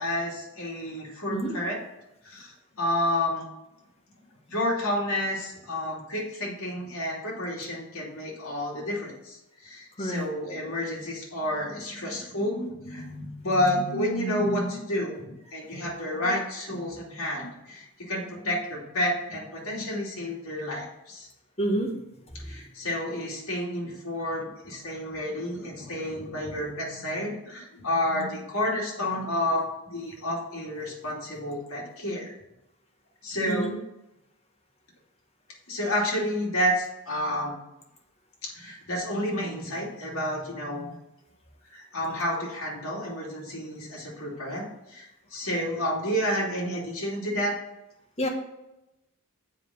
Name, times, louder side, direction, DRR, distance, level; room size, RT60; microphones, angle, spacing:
voice 1, 0.0-1.8 2.2-3.5 4.5-15.2 15.5-21.3 22.4-32.3 33.2-33.7 35.7-37.6 38.4-40.9 41.7-47.6, left 1 dB, 70° left, -3 dB, 2.7 m, -30 dB
voice 2, 21.6-21.9 33.5-33.8 48.2-48.3, right 1 dB, 30° left, 1 dB, 1.4 m, -27 dB
7.4 x 5.0 x 6.4 m, 0.91 s
head